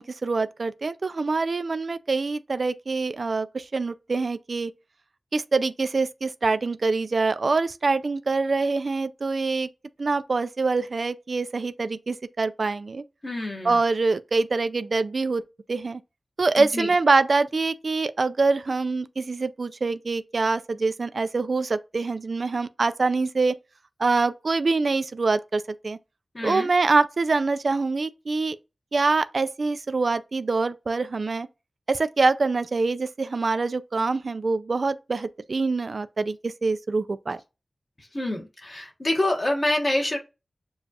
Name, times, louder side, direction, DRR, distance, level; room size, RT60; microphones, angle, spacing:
voice 1, 0.0-4.7 5.3-9.7 10.0-13.0 13.6-15.4 15.7-16.0 16.4-23.6 24.0-26.0 26.4-28.6 28.9-31.5 31.9-37.4, right 3 dB, 60° right, 0.3 m, -25 dB
voice 2, 13.2-13.8 16.6-16.9 26.3-26.7 38.0-40.2, left 1 dB, 40° left, 1.1 m, -27 dB
7.0 x 2.4 x 2.8 m
wide cardioid pair, 90°, 0 cm